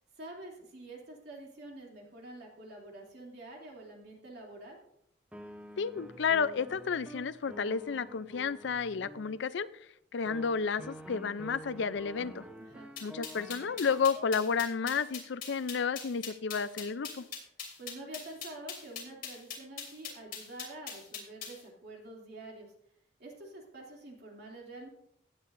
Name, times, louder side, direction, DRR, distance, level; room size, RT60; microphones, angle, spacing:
voice 1, 0.2-4.8 12.6-12.9 17.8-22.7 23.2-24.9, right 2 dB, 60° right, -1 dB, 2.7 m, -47 dB
sound 1, 5.3-9.4 10.3-14.3, equal, 5° right, 0.8 m, -48 dB
voice 2, 5.8-9.7 10.1-12.4 13.0-17.2, left 5 dB, 65° left, 14 dB, 0.5 m, -31 dB
sound 2, 13.0-21.6, left 7 dB, 50° left, 3.1 m, -41 dB
16.0 x 9.2 x 2.6 m, 0.73 s
head